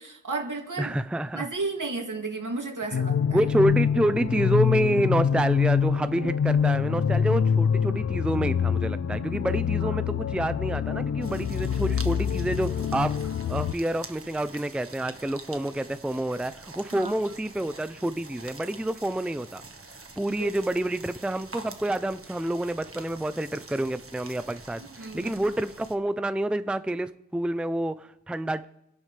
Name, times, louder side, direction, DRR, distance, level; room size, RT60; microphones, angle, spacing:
voice 1, 0.0-1.0 1.3-3.4 9.8-10.0 16.9-17.1 20.4-20.5 25.0-25.4, right 3 dB, 70° right, 1 dB, 2.6 m, -33 dB
voice 2, 0.8-1.5 3.3-13.1 13.5-19.6 20.2-28.7, right 1 dB, 5° right, 12 dB, 0.5 m, -28 dB
sound 1, 2.9-13.7, left 7 dB, 50° left, 0.5 m, -25 dB
sound 2, 11.2-26.0, right 3 dB, 45° right, 1.4 m, -46 dB
29.0 x 11.0 x 3.4 m, 0.85 s
wide cardioid pair, 50°, 32 cm